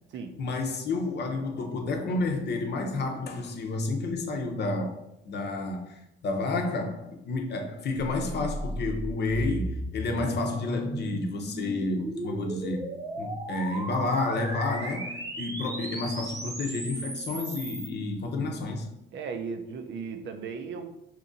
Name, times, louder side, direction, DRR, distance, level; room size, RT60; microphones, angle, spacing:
voice 1, 0.4-12.8 13.2-18.9, left 2 dB, 55° left, 0.7 m, -30 dB
sound 1, 8.0-17.9, right 1 dB, 15° right, 0.7 m, -36 dB
voice 2, 19.1-20.9, right 5 dB, 65° right, 0.5 m, -36 dB
2.8 x 2.6 x 3.8 m
cardioid pair, 90°, 20 cm